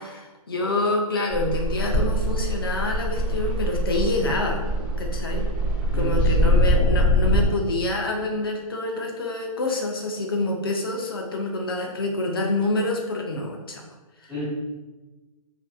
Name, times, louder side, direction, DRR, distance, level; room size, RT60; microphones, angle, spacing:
voice 1, 0.0-4.6 5.0-5.4 5.9-13.8 14.2-14.3, left 2 dB, 40° left, 1 dB, 0.4 m, -27 dB
sound 1, 1.3-7.5, equal, 30° right, 0.7 m, -23 dB
voice 2, 5.9-6.6 14.3-14.4, equal, 5° right, -14 dB, 1.0 m, -31 dB
2.5 x 2.4 x 2.3 m, 1.2 s
hypercardioid pair, 175°, 20 cm